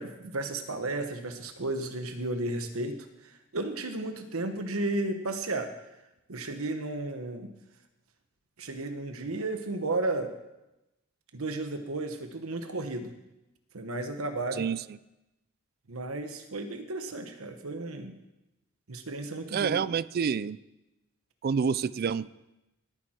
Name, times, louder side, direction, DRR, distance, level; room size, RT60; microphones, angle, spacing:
voice 1, 0.0-3.0 3.2-5.7 6.3-7.5 8.6-10.3 11.3-13.1 13.7-14.6 15.9-18.1 18.9-19.9, right 2 dB, 80° right, 7 dB, 1.1 m, -33 dB
voice 2, 19.5-20.6 21.4-22.3, right 6 dB, 45° right, 18 dB, 0.3 m, -28 dB
18.0 x 9.1 x 4.4 m, 0.96 s
head